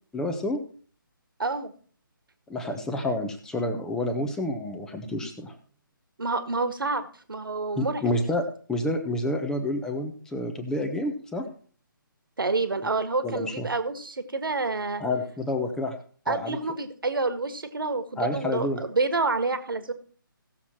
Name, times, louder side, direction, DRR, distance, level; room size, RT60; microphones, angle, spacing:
voice 1, 0.1-0.6 2.5-5.5 7.8-11.4 13.2-13.7 15.0-15.9 16.3-16.6 18.2-18.8, left 1 dB, 5° left, 5 dB, 1.1 m, -29 dB
voice 2, 1.4-1.7 6.2-8.0 12.4-15.0 16.3-19.9, right 3 dB, 70° right, 9 dB, 1.8 m, -28 dB
16.5 x 7.1 x 4.4 m, 0.43 s
figure-of-eight pair, 150°, 12 cm